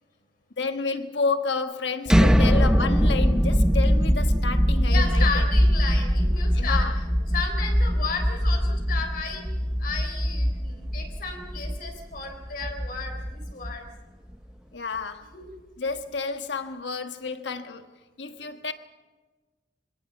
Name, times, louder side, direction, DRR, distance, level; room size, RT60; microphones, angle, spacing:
voice 1, 0.6-5.5 6.5-7.0 14.7-15.3 15.8-17.9 18.2-18.7, left 4 dB, 75° left, 1.5 m, -30 dB
sound 1, 2.1-13.9, equal, 5° right, 0.9 m, -22 dB
voice 2, 4.9-6.9 7.3-9.4 9.8-13.9 15.3-15.5, left 4 dB, 55° left, 4.0 m, -33 dB
25.5 x 18.0 x 7.3 m
head